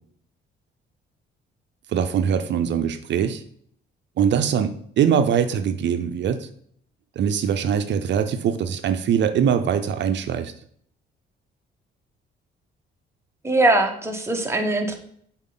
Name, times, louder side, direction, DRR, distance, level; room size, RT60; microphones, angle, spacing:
voice 1, 1.9-3.4 4.2-6.5 7.2-10.5, right 8 dB, 65° right, 9 dB, 0.6 m, -22 dB
voice 2, 13.4-14.9, right 2 dB, 15° right, 3 dB, 1.3 m, -21 dB
7.2 x 4.5 x 3.9 m, 0.63 s
cardioid pair, 90°, 20 cm